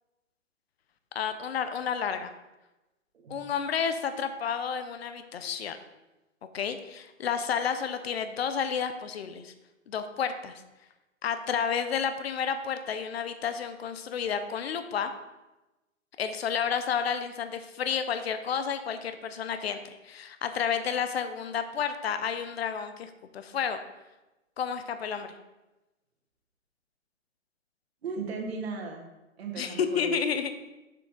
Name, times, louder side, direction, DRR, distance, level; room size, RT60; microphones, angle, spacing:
voice 1, 1.1-2.3 3.3-5.8 6.5-9.5 9.9-10.5 11.2-15.1 16.2-23.8 24.6-25.3 29.6-30.6, left 7 dB, 50° left, 9 dB, 0.7 m, -31 dB
voice 2, 28.0-29.1 29.4-30.1, right 4 dB, 50° right, 1 dB, 1.7 m, -36 dB
6.8 x 5.9 x 3.7 m, 1.0 s
hypercardioid pair, 160°, 40 cm